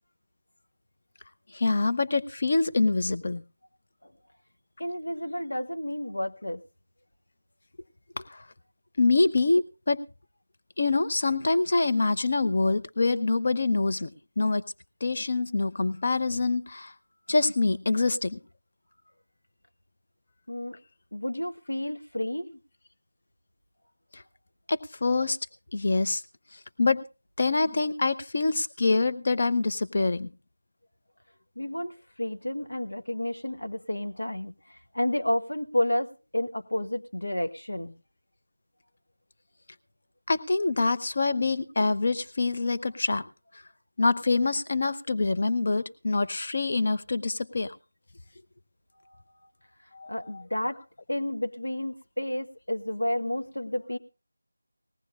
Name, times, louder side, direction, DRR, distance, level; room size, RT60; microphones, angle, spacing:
voice 1, 1.5-3.4 8.2-8.4 9.0-10.0 10.8-14.1 14.4-14.6 15.0-16.9 17.3-18.4 24.1-24.2 24.7-25.4 25.7-26.2 26.8-27.0 27.4-30.3 40.3-43.2 44.0-47.8 49.9-50.4, left 3 dB, 40° left, 11 dB, 0.8 m, -25 dB
voice 2, 4.8-6.6 20.5-20.8 21.1-22.6 31.6-38.0 49.1-49.5 50.1-50.8 51.1-54.0, left 1 dB, 75° left, 7 dB, 1.3 m, -31 dB
19.5 x 17.5 x 2.5 m, 0.32 s
figure-of-eight pair, 170°, 0 cm